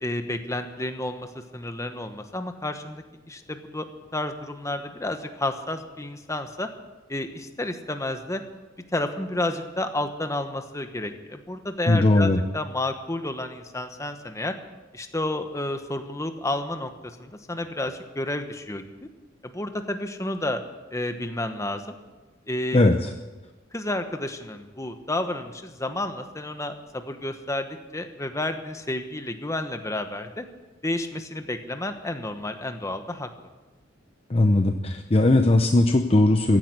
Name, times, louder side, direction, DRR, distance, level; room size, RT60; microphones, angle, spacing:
voice 1, 0.0-1.3 1.5-6.7 7.1-8.4 8.9-14.5 14.9-16.9 17.2-18.8 19.4-20.6 20.9-22.0 22.5-22.9 23.7-27.7 27.9-30.4 30.8-33.3, left 1 dB, 15° left, 7 dB, 1.2 m, -31 dB
voice 2, 11.9-12.4 22.7-23.1 34.3-36.6, left 2 dB, 30° left, 6 dB, 0.7 m, -19 dB
15.5 x 10.5 x 8.3 m, 1.2 s
head